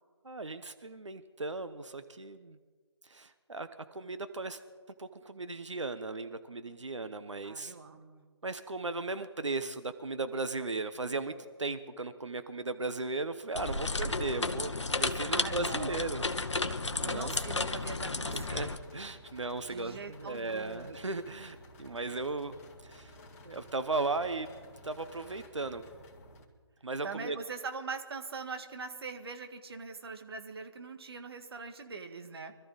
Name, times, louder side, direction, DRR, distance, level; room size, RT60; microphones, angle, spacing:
voice 1, 0.2-2.6 3.0-4.6 5.0-7.8 8.4-16.3 17.0-17.4 18.3-22.6 22.8-23.1 23.4-24.5 24.8-25.8 26.8-27.4, right 3 dB, 85° right, 10 dB, 1.0 m, -36 dB
voice 2, 7.4-8.2 15.0-16.0 17.0-18.8 19.7-20.9 27.0-32.5, right 4 dB, 55° right, 6 dB, 1.7 m, -42 dB
sound 1, 13.5-18.8, left 3 dB, 80° left, 1.1 m, -33 dB
sound 2, 18.6-26.5, left 1 dB, 30° left, 2.4 m, -54 dB
24.5 x 13.5 x 4.1 m, 1.5 s
figure-of-eight pair, 150°, 15 cm